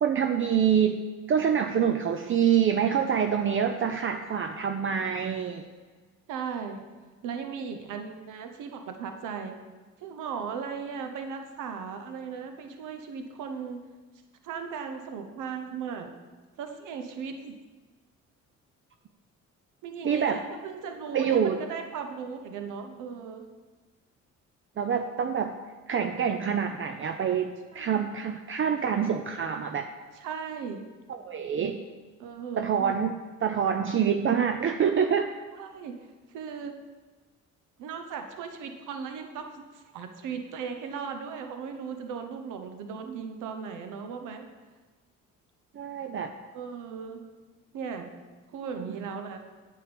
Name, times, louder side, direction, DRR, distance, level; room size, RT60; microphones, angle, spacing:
voice 1, 0.0-5.6 20.0-20.4 21.1-21.6 24.8-25.6 25.9-29.9 31.1-31.8 32.6-33.1 33.4-35.3 45.7-46.3 48.9-49.0, right 7 dB, 45° right, 6 dB, 0.6 m, -26 dB
voice 2, 6.3-6.8 7.2-9.5 10.0-13.8 14.4-16.1 16.6-17.6 19.8-23.4 27.7-28.0 30.2-30.9 32.2-33.0 35.6-36.0 36.3-36.8 37.8-44.5 46.5-47.2 47.7-48.1 48.5-49.4, right 6 dB, 90° right, 6 dB, 1.0 m, -37 dB
8.8 x 7.9 x 5.2 m, 1.4 s
cardioid pair, 90°, 30 cm